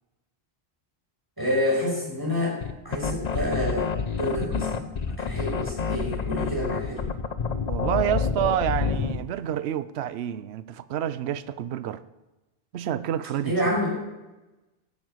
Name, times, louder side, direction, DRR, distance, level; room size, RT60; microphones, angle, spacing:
voice 1, 1.4-2.6 2.8-4.9 5.2-7.0 13.4-13.9, left 1 dB, 20° right, 6.3 m, -28 dB
sound 1, 2.6-9.2, left 5 dB, 45° left, 0.8 m, -28 dB
voice 2, 7.7-12.0 12.7-13.6, right 11 dB, 80° right, 0.9 m, -28 dB
14.0 x 9.1 x 7.9 m
omnidirectional pair, 1.1 m